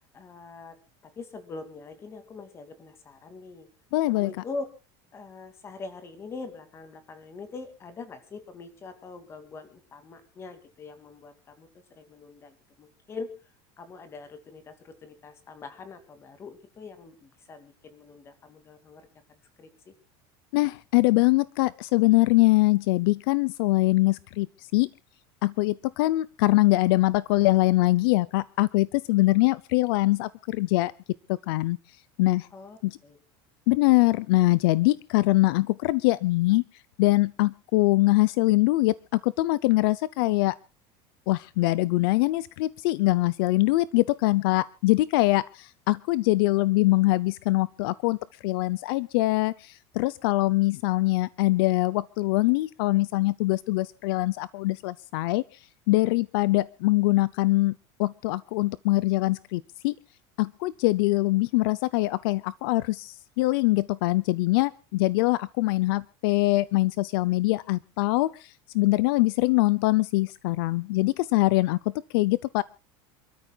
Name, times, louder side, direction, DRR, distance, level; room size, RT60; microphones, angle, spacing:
voice 1, 0.1-0.8 1.0-3.7 4.1-4.7 5.1-13.3 13.8-19.1 19.6-19.9 32.5-33.2, left 4 dB, 20° left, 10 dB, 2.4 m, -43 dB
voice 2, 3.9-4.3 20.5-24.5 24.7-24.9 25.4-30.9 31.3-31.8 32.2-32.5 32.8-33.0 33.7-36.6 37.0-40.6 41.3-48.2 48.4-55.4 55.9-57.7 58.0-59.9 60.4-71.8 72.1-72.6, left 20 dB, 70° left, 18 dB, 0.6 m, -23 dB
28.0 x 13.5 x 2.4 m, 0.32 s
cardioid pair, 170°, 13 cm